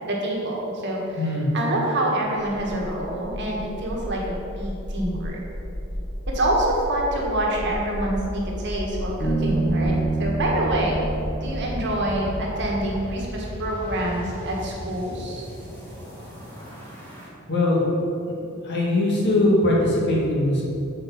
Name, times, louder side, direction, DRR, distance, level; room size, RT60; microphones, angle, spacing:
voice 1, 0.1-1.2 1.5-5.4 6.3-11.1 11.4-15.4, right 1 dB, 55° right, -2 dB, 1.5 m, -26 dB
voice 2, 1.2-1.5 17.5-17.8 18.6-20.6, left 1 dB, 55° left, -4 dB, 1.9 m, -21 dB
sound 1, 2.5-17.3, equal, 10° left, 1.8 m, -34 dB
Bass guitar, 9.2-12.7, right 3 dB, 25° left, 1.9 m, -27 dB
7.5 x 4.9 x 5.9 m, 2.7 s
head